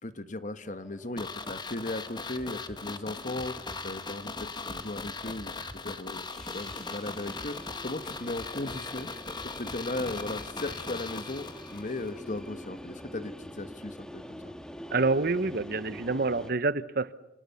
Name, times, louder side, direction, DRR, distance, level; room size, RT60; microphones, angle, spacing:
voice 1, 0.0-5.5 5.8-9.1 9.4-14.5, left 2 dB, 45° left, 11 dB, 1.4 m, -37 dB
sound 1, 0.7-3.8 6.1-16.5, equal, 5° left, 1.4 m, -46 dB
sound 2, 1.2-12.1 12.4-12.5, left 4 dB, 25° left, 1.6 m, -39 dB
sound 3, 2.4-2.8 3.4-3.8 4.4-4.8 5.4-5.8 6.4-6.8 7.4-7.8 8.4-8.8 9.4-9.8 10.4-10.7, equal, 20° right, 2.5 m, -49 dB
voice 2, 14.9-17.1, right 3 dB, 55° right, 15 dB, 1.0 m, -27 dB
29.0 x 27.0 x 7.0 m, 0.90 s
head